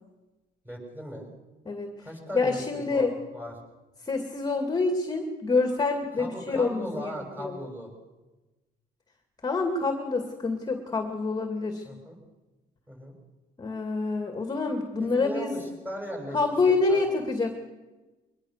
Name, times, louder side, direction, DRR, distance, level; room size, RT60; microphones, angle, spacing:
voice 1, 0.6-1.3 2.0-2.6 2.9-3.1 3.3-3.6 6.2-7.9 11.8-12.2 12.9-13.1 15.0-16.4 16.9-17.0, equal, 10° right, 1 dB, 7.1 m, -38 dB
voice 2, 2.3-3.1 4.0-7.1 7.4-7.6 9.4-11.8 13.6-15.6 16.3-17.5, left 3 dB, 25° left, 4 dB, 2.3 m, -27 dB
22.5 x 20.5 x 6.6 m, 1.2 s
cardioid pair, 110°, 17 cm